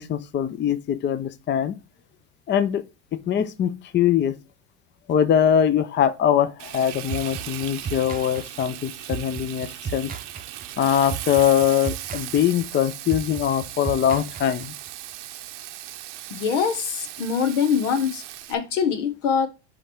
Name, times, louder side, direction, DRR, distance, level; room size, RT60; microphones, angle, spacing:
voice 1, 0.0-1.8 2.5-2.8 3.1-4.3 5.1-10.1 10.8-14.7, left 9 dB, 30° left, 0.6 m, -22 dB
Frying (food), 6.6-18.5, right 14 dB, 80° right, 0.8 m, -37 dB
sound 1, 7.1-14.9, right 6 dB, 25° right, 0.7 m, -35 dB
voice 2, 16.3-18.2 18.5-19.5, left 7 dB, 85° left, 1.3 m, -23 dB
5.1 x 5.0 x 4.5 m
hypercardioid pair, 85°, 36 cm